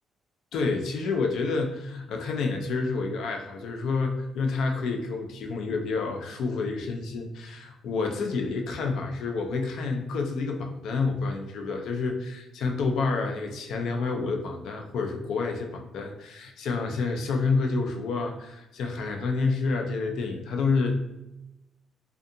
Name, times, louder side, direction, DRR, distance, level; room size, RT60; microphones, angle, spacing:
voice 1, 0.5-20.9, left 4 dB, 75° left, 3 dB, 0.4 m, -29 dB
2.6 x 2.3 x 2.6 m, 0.92 s
cardioid pair, 90°, 0 cm